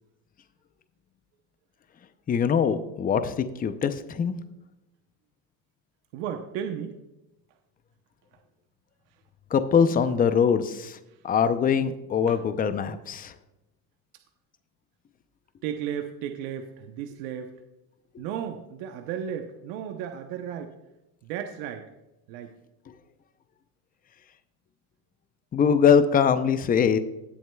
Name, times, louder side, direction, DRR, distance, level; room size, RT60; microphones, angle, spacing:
voice 1, 2.3-4.3 9.5-11.0 11.2-13.3 25.5-27.0, left 7 dB, 20° left, 11 dB, 0.6 m, -22 dB
voice 2, 6.1-7.0 11.1-11.2 12.3-12.4 15.6-17.5 18.2-20.7 21.2-21.9 22.3-22.5, right 9 dB, 70° right, 5 dB, 0.9 m, -34 dB
17.0 x 7.7 x 2.3 m, 0.98 s
supercardioid pair, 125°, 42 cm